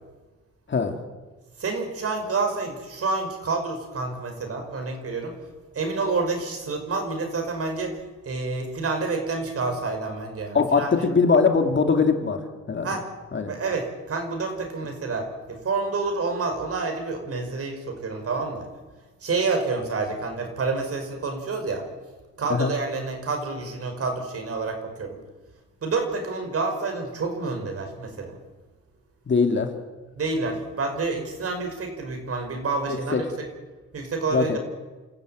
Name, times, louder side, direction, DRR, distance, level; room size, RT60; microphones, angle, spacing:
voice 1, 1.6-5.4 5.7-11.0 12.8-13.1 13.4-18.7 19.2-21.9 22.4-25.2 25.8-28.4 30.2-33.5 33.9-34.6, right 3 dB, 50° right, 4 dB, 5.7 m, -28 dB
voice 2, 10.5-12.9 13.3-13.5 22.5-22.7 29.3-29.7 32.9-33.2 34.3-34.6, left 5 dB, 40° left, 5 dB, 2.6 m, -22 dB
28.5 x 14.0 x 9.2 m, 1.3 s
cardioid pair, 90°, 30 cm